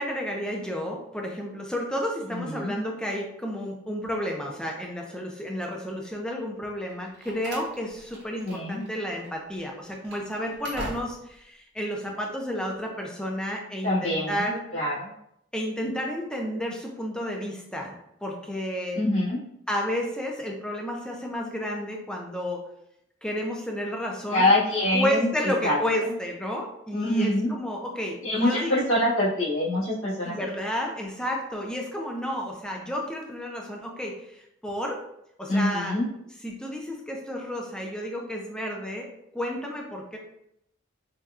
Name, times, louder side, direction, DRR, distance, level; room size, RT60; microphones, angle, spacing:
voice 1, 0.0-14.6 15.5-19.0 19.7-22.6 23.2-24.5 24.9-28.8 30.2-35.0 35.4-36.0 36.4-39.1 39.3-40.2, equal, 5° left, 0 dB, 0.4 m, -31 dB
voice 2, 2.3-2.7 8.4-8.8 13.8-14.4 14.7-15.1 18.9-19.4 24.3-25.3 25.6-25.8 26.9-27.5 28.2-30.3 35.5-36.1, left 1 dB, 85° left, -10 dB, 1.5 m, -24 dB
Slam, 6.9-8.9 9.2-9.3 9.8-11.4, right 1 dB, 50° right, 0.8 m, -41 dB
4.0 x 2.3 x 2.4 m, 0.78 s
head